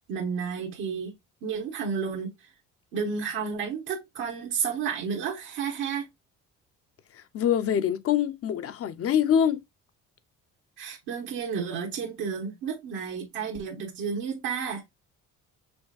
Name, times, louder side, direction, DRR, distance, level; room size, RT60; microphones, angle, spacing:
voice 1, 0.1-1.1 1.4-2.3 2.9-6.1 10.8-14.8, right 6 dB, 80° right, 1.3 m, -31 dB
voice 2, 7.1-9.6, left 9 dB, 50° left, 0.6 m, -25 dB
6.0 x 3.3 x 2.3 m
supercardioid pair, 80°, 31 cm